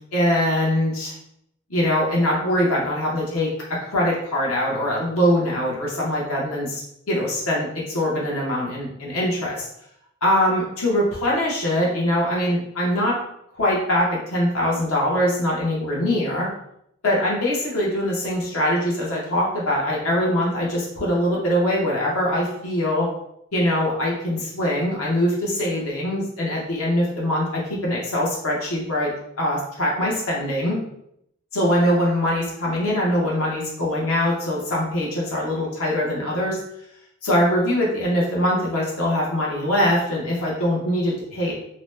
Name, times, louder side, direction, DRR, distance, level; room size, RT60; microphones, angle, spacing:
voice 1, 0.1-1.1 1.7-6.8 7.1-9.7 10.2-13.2 13.5-16.5 17.0-23.1 23.5-29.1 29.4-30.8 31.5-36.6 37.2-41.5, left 1 dB, 75° left, -4 dB, 0.8 m, -22 dB
2.8 x 2.1 x 3.1 m, 0.75 s
head